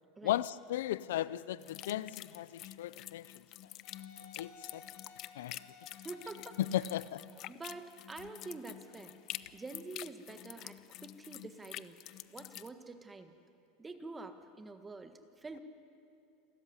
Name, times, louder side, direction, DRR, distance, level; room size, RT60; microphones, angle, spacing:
voice 1, 0.2-3.3 4.4-4.8 5.4-5.6 6.6-7.2, left 13 dB, 90° left, 0.5 m, -36 dB
sound 1, 1.6-12.7, left 14 dB, 50° left, 0.6 m, -48 dB
Wind instrument woodwind instrument, 3.8-9.5, left 4 dB, 75° left, 3.8 m, -59 dB
voice 2, 6.0-6.6 7.5-9.1 9.5-12.0 12.3-13.3 13.8-15.6, right 3 dB, 15° right, 1.6 m, -47 dB
28.5 x 14.0 x 9.8 m
supercardioid pair, 130°, 0 cm